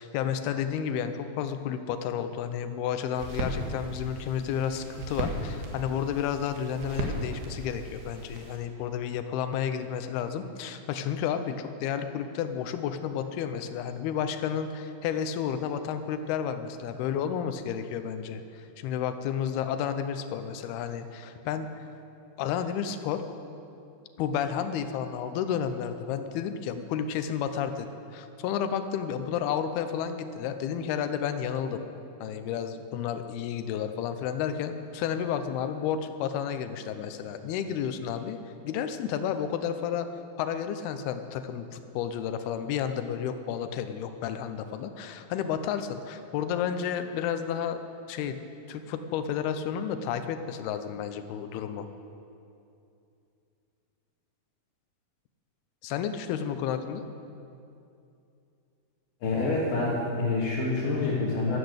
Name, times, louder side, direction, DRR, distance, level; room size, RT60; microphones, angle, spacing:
voice 1, 0.0-21.7 22.4-23.2 24.2-31.8 32.2-38.4 38.6-40.1 40.4-47.8 48.1-48.4 48.7-51.9 55.8-57.0, left 8 dB, 80° left, 9 dB, 2.7 m, -31 dB
sound 1, 3.2-8.6, right 1 dB, 85° right, 3.9 m, -36 dB
voice 2, 59.2-61.6, left 3 dB, 60° left, -6 dB, 3.3 m, -27 dB
13.0 x 13.0 x 8.0 m, 2.7 s
omnidirectional pair, 4.6 m